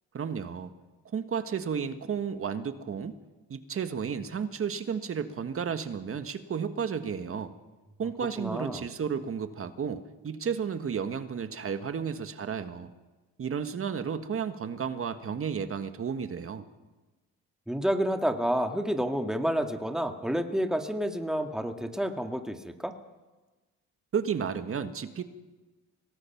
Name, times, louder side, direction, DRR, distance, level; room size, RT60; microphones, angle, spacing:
voice 1, 0.1-0.7 1.1-3.2 3.5-7.5 8.0-12.9 13.4-16.7 24.1-25.2, right 7 dB, 45° right, 9 dB, 1.6 m, -32 dB
voice 2, 8.4-8.8 17.7-22.9, equal, ahead, 5 dB, 1.9 m, -29 dB
25.0 x 19.0 x 5.9 m, 1.2 s
cardioid pair, 90°, 30 cm